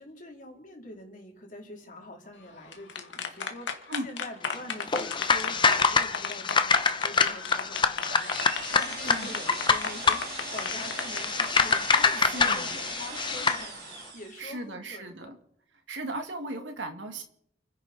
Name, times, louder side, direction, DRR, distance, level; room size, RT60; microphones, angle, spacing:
voice 1, 0.0-15.3 16.5-16.8, left 1 dB, 45° left, 1 dB, 3.8 m, -45 dB
sound 1, 2.5-12.3, left 5 dB, 90° left, 2.0 m, -34 dB
sound 2, 4.9-13.6, left 5 dB, 25° left, 0.9 m, -26 dB
sound 3, 8.1-14.6, right 5 dB, 60° right, 3.4 m, -40 dB
voice 2, 9.0-9.4 12.2-12.8 14.4-15.4 15.9-17.2, right 2 dB, 90° right, 4 dB, 2.5 m, -37 dB
29.5 x 10.5 x 4.4 m, 0.71 s
head